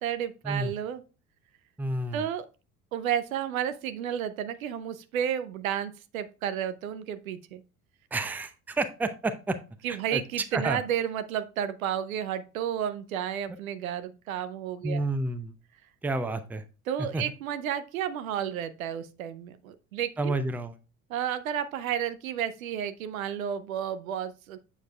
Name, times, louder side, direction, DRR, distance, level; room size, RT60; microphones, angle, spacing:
voice 1, 0.0-1.0 2.1-2.4 2.9-7.6 9.8-15.0 16.9-20.4 21.1-24.6, right 9 dB, 70° right, 12 dB, 0.7 m, -32 dB
voice 2, 1.8-2.2 8.1-9.6 9.9-10.2 10.5-10.8 14.8-15.5 16.0-16.6 17.0-17.2 20.2-20.8, right 2 dB, 5° right, 11 dB, 0.6 m, -30 dB
7.7 x 7.2 x 2.3 m, 0.32 s
figure-of-eight pair, 65°, 43 cm